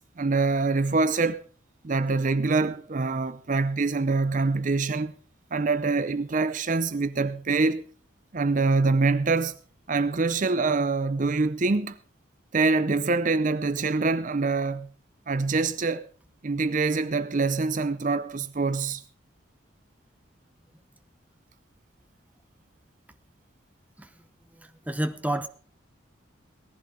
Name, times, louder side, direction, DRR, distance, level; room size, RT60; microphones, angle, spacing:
voice 1, 0.2-1.4 1.8-5.1 5.5-7.8 8.3-9.5 9.9-12.0 12.5-14.9 15.3-16.1 16.4-19.0, right 3 dB, 40° right, 0.6 m, -25 dB
voice 2, 24.5-25.5, right 1 dB, 10° right, 0.8 m, -30 dB
18.5 x 15.0 x 3.3 m
head